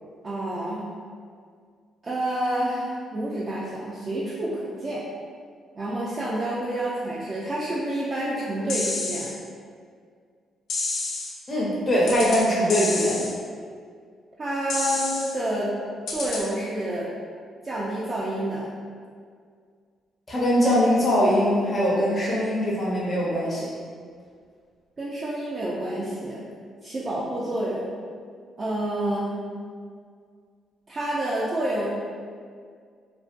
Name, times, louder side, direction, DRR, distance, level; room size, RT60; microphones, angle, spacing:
voice 1, 0.2-0.9 2.0-5.0 5.8-9.3 14.4-15.7 16.1-17.1 17.6-18.7 25.0-26.4 26.8-27.9 28.6-29.4 30.9-31.9, right 1 dB, 35° right, -7 dB, 0.4 m, -28 dB
sound 1, 8.7-9.3 10.7-11.3 12.1-12.4 12.7-13.3 14.7-15.3 16.1-16.4, left 3 dB, 75° left, 0.5 m, -29 dB
voice 2, 11.5-13.3 20.3-23.7, equal, 30° left, -7 dB, 0.6 m, -22 dB
2.5 x 2.1 x 2.5 m, 2.1 s
cardioid pair, 90°, 0 cm